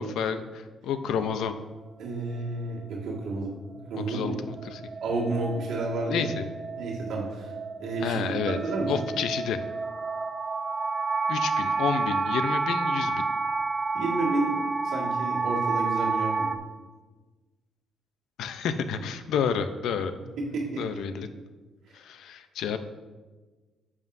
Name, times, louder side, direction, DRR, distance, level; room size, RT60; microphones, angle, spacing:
voice 1, 0.0-1.5 4.1-4.8 6.1-6.4 8.0-8.6 8.9-9.6 11.3-13.3 18.4-20.1 20.8-21.3 21.9-22.8, left 7 dB, 75° left, 9 dB, 0.6 m, -30 dB
voice 2, 2.0-4.4 4.6-4.7 5.0-6.3 6.8-7.5 7.8-8.2 8.5-9.0 13.9-16.5 20.4-20.8, right 3 dB, 75° right, -4 dB, 1.8 m, -31 dB
sound 1, 3.7-16.6, right 4 dB, 25° right, 0.4 m, -30 dB
11.0 x 7.3 x 2.6 m, 1.3 s
cardioid pair, 130°, 0 cm